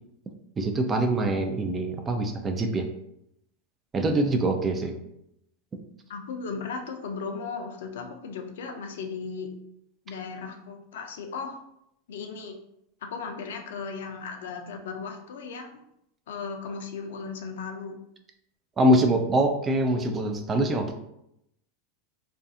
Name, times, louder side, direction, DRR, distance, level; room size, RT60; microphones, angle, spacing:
voice 1, 0.6-2.9 3.9-4.9 18.8-20.9, right 1 dB, 25° right, 5 dB, 0.4 m, -24 dB
voice 2, 6.1-9.5 10.1-11.6 12.1-12.6 13.0-15.8 16.3-18.0, left 5 dB, 70° left, 3 dB, 0.4 m, -36 dB
2.4 x 2.3 x 2.6 m, 0.78 s
hypercardioid pair, 90°, 0 cm